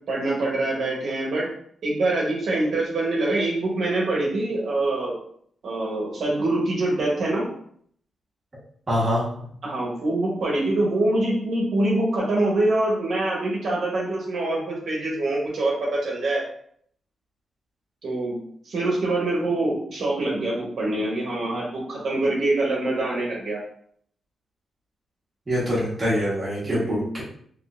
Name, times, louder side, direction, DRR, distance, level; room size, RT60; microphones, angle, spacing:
voice 1, 0.1-1.5 1.8-5.2 5.6-7.4 9.6-16.4 18.0-18.4 18.6-23.6 26.6-27.1, right 2 dB, 60° right, -4 dB, 1.0 m, -24 dB
voice 2, 8.9-9.5 25.5-27.2, equal, 20° right, -7 dB, 1.3 m, -25 dB
3.6 x 3.1 x 2.5 m, 0.62 s
wide cardioid pair, 165°, 0 cm